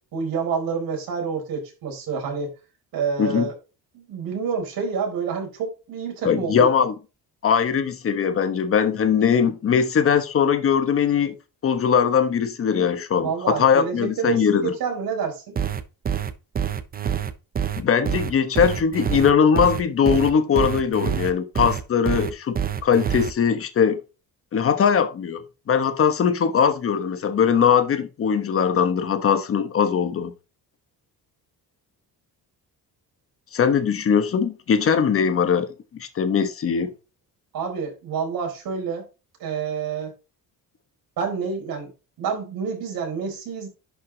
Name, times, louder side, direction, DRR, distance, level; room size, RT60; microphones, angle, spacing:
voice 1, 0.1-2.5 2.9-3.5 3.9-6.7 13.2-15.6 37.5-39.0 39.4-40.1 41.2-41.9 42.2-43.7, right 5 dB, 70° right, 4.3 m, -28 dB
voice 2, 6.2-6.9 7.4-11.4 11.6-14.7 17.8-22.6 22.8-24.0 24.5-30.3 33.5-36.9, left 7 dB, 35° left, 1.2 m, -20 dB
sound 1, 15.6-23.3, right 8 dB, 25° right, 0.6 m, -26 dB
11.0 x 5.6 x 2.9 m
cardioid pair, 170°, 37 cm